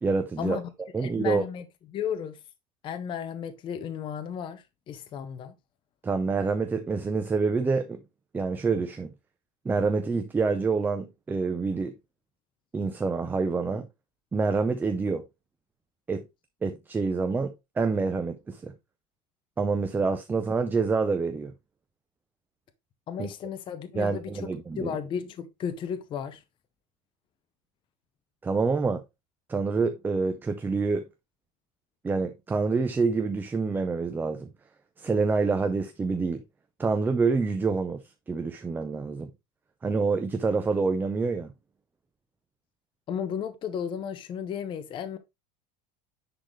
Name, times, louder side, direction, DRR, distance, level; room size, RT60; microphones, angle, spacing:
voice 1, 0.0-0.6 0.9-1.4 6.0-8.0 8.3-9.1 9.6-11.9 12.7-13.9 14.3-15.2 16.1-16.3 16.6-18.7 19.6-21.5 23.2-23.3 24.0-24.9 28.4-29.0 29.5-31.1 32.0-34.5 35.0-36.4 36.8-39.3 39.8-41.5, right 4 dB, 10° right, 0.5 m, -27 dB
voice 2, 1.0-1.6 1.9-2.4 2.8-5.5 23.1-24.5 24.8-26.4 43.1-45.2, left 8 dB, 25° left, 0.7 m, -34 dB
10.0 x 3.9 x 3.1 m
cardioid pair, 165°, 18 cm